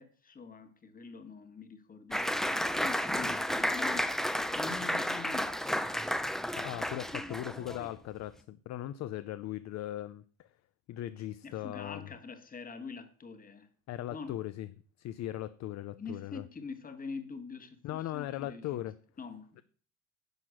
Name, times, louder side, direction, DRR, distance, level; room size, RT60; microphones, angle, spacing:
voice 1, 0.0-6.2 7.5-7.9 11.4-13.7 14.1-14.4 16.0-18.8 19.2-19.6, left 5 dB, 25° left, 1.5 m, -45 dB
Applause, 2.1-7.8, equal, ahead, 0.5 m, -32 dB
voice 2, 6.6-10.5 10.9-12.1 13.9-14.7 15.0-16.4 17.8-19.0, left 13 dB, 50° left, 0.6 m, -39 dB
10.5 x 5.9 x 6.4 m
cardioid pair, 120°, 36 cm